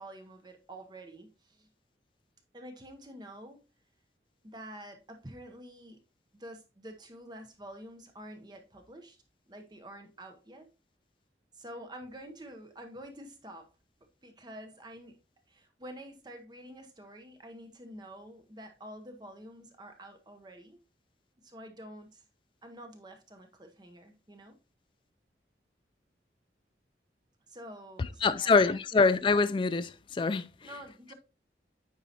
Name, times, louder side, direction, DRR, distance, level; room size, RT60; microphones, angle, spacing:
voice 1, 0.0-1.7 2.5-3.6 4.4-6.0 6.3-9.2 9.5-10.7 11.5-13.7 14.2-15.2 15.5-20.8 21.4-22.2 22.6-24.6 27.5-28.8 30.6-31.1, right 1 dB, 25° right, 0.8 m, -48 dB
voice 2, 28.0-30.5, left 4 dB, 30° left, 0.3 m, -25 dB
9.1 x 4.7 x 2.8 m
head